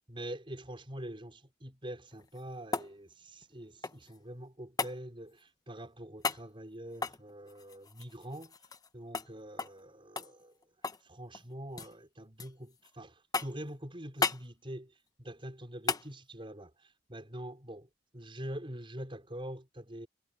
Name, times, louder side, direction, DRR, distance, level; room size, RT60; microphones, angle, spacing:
voice 1, 0.1-8.5 8.9-10.6 11.0-20.1, right 1 dB, 30° right, 5.4 m, -45 dB
sound 1, 2.1-4.2 4.8-5.0 6.2-6.5 6.9-8.9 9.1-9.3 9.6-9.8 10.2-11.1 11.3-11.9 12.4-12.9 13.3-13.7 14.2-14.5 15.9-16.1 18.4-18.5, left 4 dB, 20° left, 0.9 m, -35 dB
head